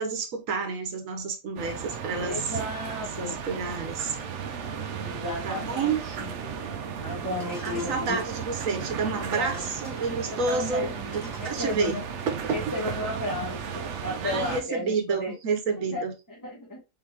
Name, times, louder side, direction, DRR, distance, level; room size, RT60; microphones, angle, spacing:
voice 1, 0.0-2.5 3.2-4.2 5.4-6.0 7.6-10.9 11.4-12.0 14.2-16.1, right 4 dB, 80° right, 1.3 m, -29 dB
sound 1, 1.6-14.6, right 6 dB, 65° right, 1.0 m, -34 dB
voice 2, 2.2-3.4 5.0-6.3 7.0-8.2 9.3-9.6 10.3-12.0 12.5-15.3 15.8-16.0 16.4-16.8, left 1 dB, 15° left, 1.2 m, -34 dB
sound 2, 7.4-8.7 9.3-10.3 10.8-10.9 11.1-12.3, left 1 dB, 30° left, 2.3 m, -48 dB
4.0 x 3.9 x 2.9 m
omnidirectional pair, 1.4 m